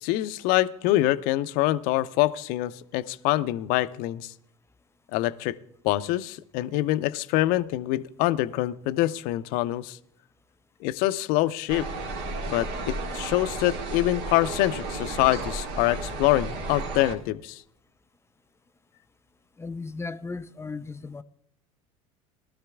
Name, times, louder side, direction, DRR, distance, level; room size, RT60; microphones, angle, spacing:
voice 1, 0.0-4.3 5.1-5.6 5.8-10.0 10.8-11.9 12.5-17.6, left 16 dB, 60° left, 0.5 m, -25 dB
sound 1, 11.7-17.2, right 3 dB, 65° right, 1.7 m, -33 dB
voice 2, 19.6-21.2, left 4 dB, 15° left, 0.5 m, -36 dB
18.5 x 12.5 x 2.3 m
hypercardioid pair, 75°, 17 cm